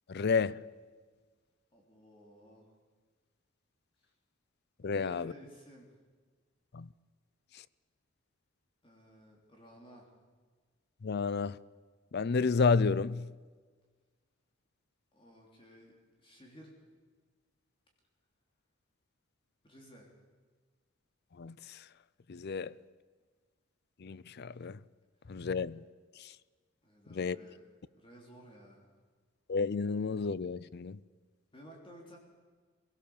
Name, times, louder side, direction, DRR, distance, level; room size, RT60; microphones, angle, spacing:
voice 1, 0.1-0.6 4.8-5.3 6.7-6.9 11.0-11.6 12.1-13.3 21.4-21.8 22.3-22.7 24.0-24.8 25.3-25.8 26.2-26.3 27.1-27.4 29.5-31.0, left 4 dB, 55° left, 0.5 m, -31 dB
voice 2, 1.7-2.7 4.0-4.1 4.8-5.9 8.8-10.1 15.1-15.9 16.2-16.8 19.6-20.1 26.8-27.6 28.0-29.0 31.5-32.2, equal, 25° left, 3.4 m, -55 dB
22.5 x 17.0 x 7.2 m
head